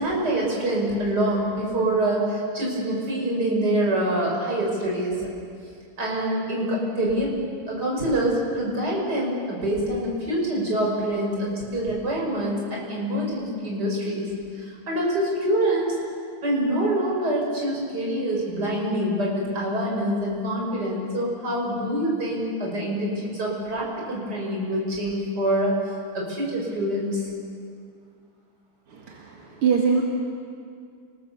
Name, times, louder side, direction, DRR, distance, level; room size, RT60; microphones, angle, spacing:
voice 1, 0.0-5.1 6.0-7.3 7.7-14.3 14.6-16.0 16.4-25.8 26.1-27.3, right 1 dB, 45° right, -3 dB, 6.1 m, -25 dB
voice 2, 28.9-30.0, right 6 dB, 80° right, 0 dB, 2.8 m, -23 dB
29.5 x 20.0 x 7.0 m, 2.3 s
omnidirectional pair, 2.4 m